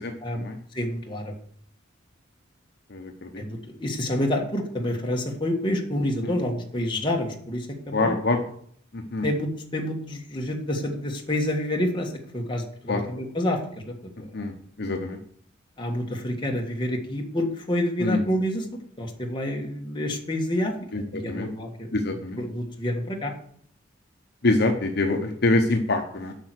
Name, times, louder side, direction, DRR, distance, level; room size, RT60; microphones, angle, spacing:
voice 1, 0.0-0.6 2.9-3.3 6.2-6.4 7.9-8.4 8.9-9.3 12.9-13.1 14.3-15.2 18.0-18.3 20.9-21.5 21.9-22.4 24.4-26.3, left 2 dB, 55° left, 4 dB, 1.0 m, -25 dB
voice 2, 0.7-1.3 3.4-8.2 9.2-13.6 13.8-14.3 15.8-18.6 19.0-20.7 21.1-21.9 22.4-23.3, left 1 dB, 25° left, 1 dB, 1.6 m, -28 dB
8.8 x 5.8 x 7.8 m, 0.62 s
head